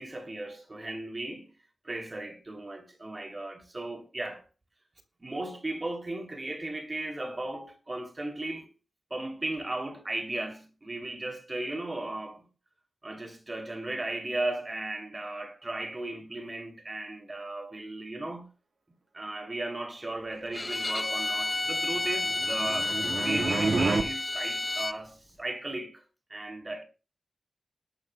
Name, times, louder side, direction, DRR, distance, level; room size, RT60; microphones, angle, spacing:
voice 1, 0.0-1.5 1.8-4.4 5.2-8.7 9.1-12.5 13.0-18.5 19.1-26.0 26.3-26.8, right 2 dB, 30° right, 2.8 m, -36 dB
Bowed string instrument, 20.5-25.0, left 2 dB, 30° left, 0.6 m, -31 dB
sound 1, 22.1-24.0, right 3 dB, 70° right, 1.7 m, -29 dB
19.5 x 12.5 x 2.2 m
wide cardioid pair, 80°, 0 cm